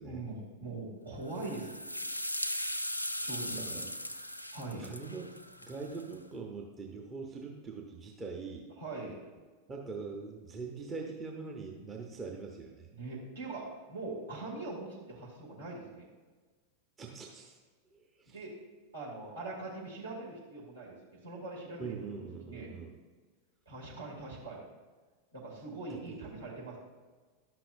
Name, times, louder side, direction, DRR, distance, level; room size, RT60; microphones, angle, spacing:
voice 1, 0.0-1.7 3.2-3.8 4.5-4.9 8.8-9.2 12.9-16.1 18.3-18.5 18.9-21.0 21.2-22.0 22.5-22.7 23.7-24.7 25.3-26.8, right 3 dB, 70° right, -5 dB, 2.3 m, -42 dB
sound 1, 1.3-6.1, left 1 dB, 90° left, 0.4 m, -38 dB
voice 2, 3.5-3.9 4.8-8.7 9.7-12.9 17.0-17.6 17.9-18.4 21.8-23.0 25.9-26.2, right 4 dB, 20° right, 1 dB, 0.8 m, -43 dB
11.5 x 5.9 x 2.5 m, 1.4 s
figure-of-eight pair, 90°, 0 cm